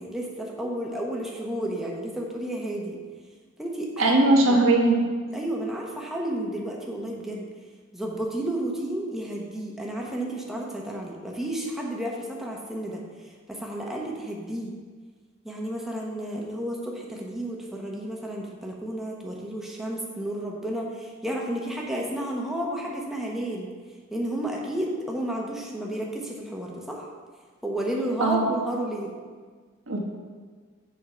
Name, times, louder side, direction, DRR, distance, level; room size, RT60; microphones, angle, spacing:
voice 1, 0.0-3.0 3.6-4.6 5.3-7.5 7.9-13.0 13.5-14.7 15.4-23.7 24.1-27.1 27.6-29.2, right 1 dB, ahead, -2 dB, 0.9 m, -32 dB
voice 2, 4.0-5.0 28.2-28.5 29.9-30.0, right 2 dB, 70° right, -1 dB, 1.2 m, -19 dB
7.2 x 4.6 x 5.6 m, 1.5 s
head